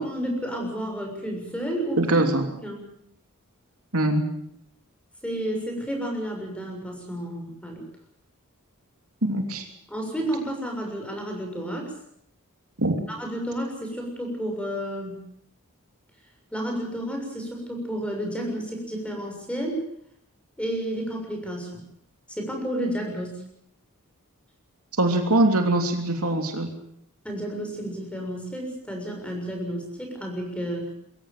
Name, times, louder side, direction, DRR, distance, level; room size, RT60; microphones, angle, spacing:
voice 1, 0.0-2.4 2.6-2.8 5.2-7.8 9.9-11.9 13.1-15.3 16.5-19.9 20.6-21.8 22.3-23.4 27.2-30.9, right 1 dB, 5° left, 1 dB, 6.9 m, -31 dB
voice 2, 2.0-2.5 3.9-4.2 9.2-9.6 12.8-13.0 25.0-26.7, right 2 dB, 70° right, 4 dB, 3.1 m, -22 dB
23.0 x 15.5 x 9.0 m, 0.71 s
head